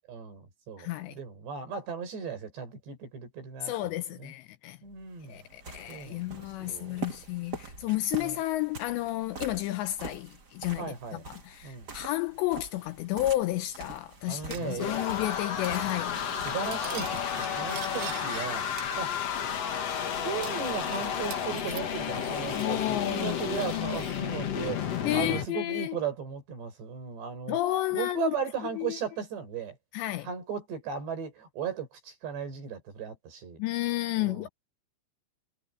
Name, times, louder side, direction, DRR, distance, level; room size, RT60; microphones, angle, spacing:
voice 1, 0.1-4.3 4.8-5.4 5.9-7.0 8.2-8.4 10.8-11.2 11.6-11.9 14.3-15.0 16.4-19.2 20.2-27.6 27.9-29.8 30.2-33.6 34.2-34.5, right 6 dB, 60° right, 7.8 m, -37 dB
voice 2, 0.8-1.2 3.6-4.8 5.3-16.2 22.5-23.6 25.0-25.9 27.5-28.4 28.8-29.0 29.9-30.3 33.6-34.5, left 16 dB, 85° left, 2.7 m, -31 dB
sound 1, 4.9-17.8, right 4 dB, 35° right, 1.7 m, -45 dB
sound 2, 14.2-25.5, left 8 dB, 55° left, 1.8 m, -32 dB
Cutlery silverware, 14.5-15.4 15.6-15.9 16.2-18.5 18.8-19.5 19.8-19.9 20.4-22.8 23.0-24.2, right 12 dB, 75° right, 4.0 m, -46 dB
omnidirectional pair, 5.6 m